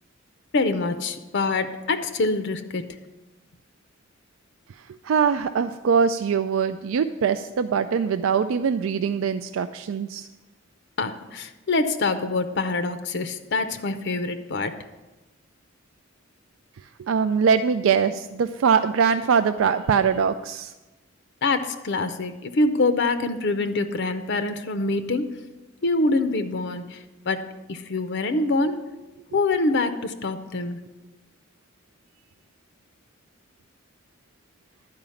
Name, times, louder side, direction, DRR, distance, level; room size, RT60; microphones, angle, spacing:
voice 1, 0.5-2.9 11.0-14.8 21.4-25.4 25.8-28.9 29.3-30.8, left 3 dB, 55° left, 10 dB, 0.6 m, -25 dB
voice 2, 5.0-10.3 17.0-20.7, right 6 dB, 75° right, 9 dB, 0.3 m, -22 dB
11.5 x 4.9 x 7.0 m, 1.1 s
head